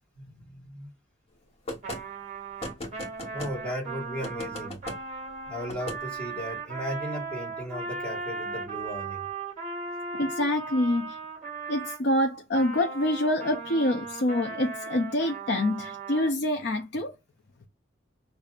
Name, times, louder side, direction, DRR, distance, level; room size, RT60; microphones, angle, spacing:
voice 1, 0.1-0.9 3.3-4.8 5.4-9.3, equal, 5° left, 1.5 m, -36 dB
sound 1, 1.7-2.0 2.6-3.5 4.2-5.0 5.7-6.0, left 1 dB, 30° left, 1.2 m, -37 dB
Trumpet, 1.8-12.0 12.5-16.3, right 4 dB, 40° right, 2.0 m, -37 dB
voice 2, 10.1-11.2 11.7-17.1, left 1 dB, 55° left, 0.6 m, -26 dB
6.6 x 2.6 x 2.4 m
head